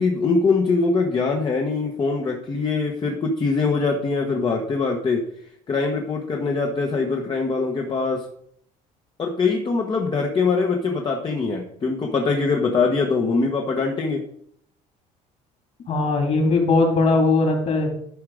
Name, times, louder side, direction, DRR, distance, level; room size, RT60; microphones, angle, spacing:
voice 1, 0.0-5.2 5.7-8.3 9.2-14.2, left 4 dB, 30° left, 1 dB, 1.3 m, -23 dB
voice 2, 15.9-17.9, left 3 dB, 45° left, 2 dB, 3.3 m, -19 dB
11.5 x 4.8 x 5.1 m, 0.67 s
cardioid pair, 120°, 15 cm